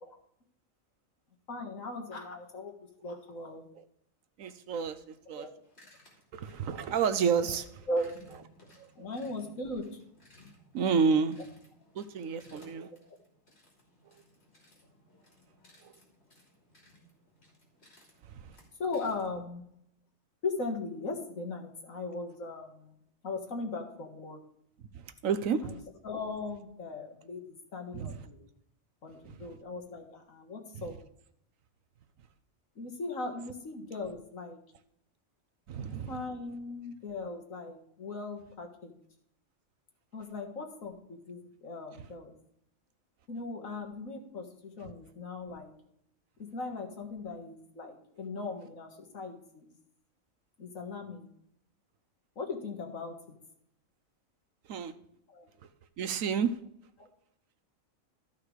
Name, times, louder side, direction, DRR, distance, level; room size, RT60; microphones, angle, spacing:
voice 1, 1.5-2.7 3.0-3.7 5.3-5.5 7.9-8.0 9.0-10.0 18.8-19.6 20.4-24.4 25.6-25.8 26.0-27.4 27.7-28.5 29.0-31.0 32.8-34.6 36.1-38.9 40.1-42.4 43.3-45.7 46.4-49.7 50.6-51.3 52.4-53.1 55.3-55.5 57.0-57.1, left 3 dB, 80° left, 3 dB, 2.1 m, -38 dB
voice 2, 4.4-5.5 6.3-7.8 8.8-8.9 10.7-11.4 11.9-12.9 14.1-14.2 15.8-15.9 18.3-18.5 24.9-25.8 27.9-28.3 29.2-29.4 30.7-30.9 35.7-36.2 44.8-44.9 54.7-54.9 56.0-56.6, right 6 dB, 80° right, 11 dB, 1.2 m, -30 dB
sound 1, 5.1-19.4, left 1 dB, 50° left, 3.2 m, -60 dB
13.0 x 5.7 x 4.8 m, 0.73 s
omnidirectional pair, 1.4 m